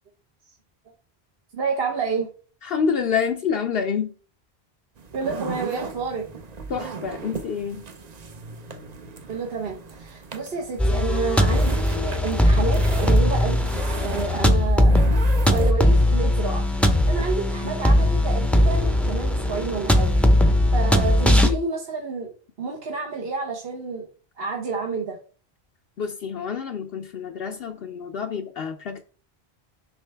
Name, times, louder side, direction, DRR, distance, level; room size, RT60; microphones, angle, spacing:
voice 1, 1.5-2.3 5.1-6.2 9.3-13.6 14.0-15.1 15.5-16.6 17.1-20.1 20.7-24.1 24.4-25.2, right 4 dB, 65° right, 1.2 m, -29 dB
voice 2, 2.6-4.1 6.7-7.8 17.6-17.8 21.0-21.1 21.4-21.6 26.0-29.0, left 6 dB, 70° left, 0.8 m, -27 dB
sound 1, 5.0-15.7, right 5 dB, 45° right, 0.8 m, -37 dB
sound 2, 10.8-21.5, left 1 dB, ahead, 0.6 m, -19 dB
7.0 x 5.4 x 3.3 m
omnidirectional pair, 1.1 m